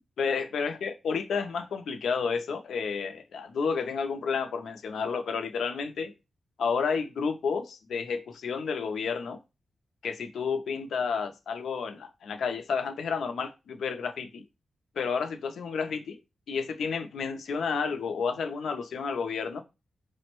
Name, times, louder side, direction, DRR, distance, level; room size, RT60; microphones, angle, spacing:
voice 1, 0.2-6.1 6.6-9.4 10.0-14.4 15.0-16.2 16.5-19.6, left 5 dB, 85° left, 0.5 m, -31 dB
5.1 x 2.1 x 3.0 m
wide cardioid pair, 180°, 0 cm